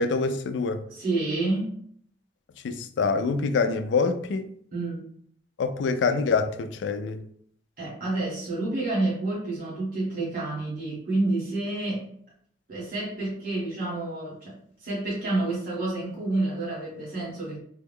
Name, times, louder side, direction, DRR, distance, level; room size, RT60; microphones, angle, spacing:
voice 1, 0.0-0.8 2.6-4.5 5.6-7.2, left 4 dB, 75° left, 0.3 m, -25 dB
voice 2, 0.9-1.7 4.7-5.0 7.8-12.1 12.7-14.5 14.8-17.6, right 2 dB, 55° right, 1.5 m, -29 dB
3.4 x 2.2 x 3.5 m
head